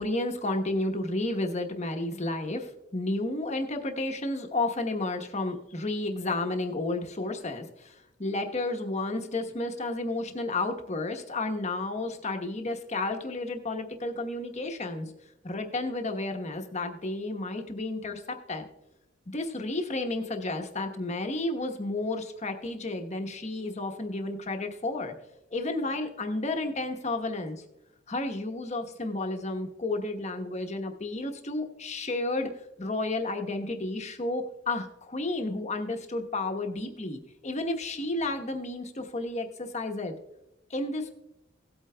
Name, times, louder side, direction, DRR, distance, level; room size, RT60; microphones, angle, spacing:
voice 1, 0.0-7.9 8.2-15.1 15.4-18.7 19.3-25.1 25.5-27.6 28.1-32.5 32.8-40.1 40.7-41.1, left 2 dB, 35° left, 5 dB, 1.0 m, -32 dB
17.5 x 8.5 x 2.2 m, 0.92 s
head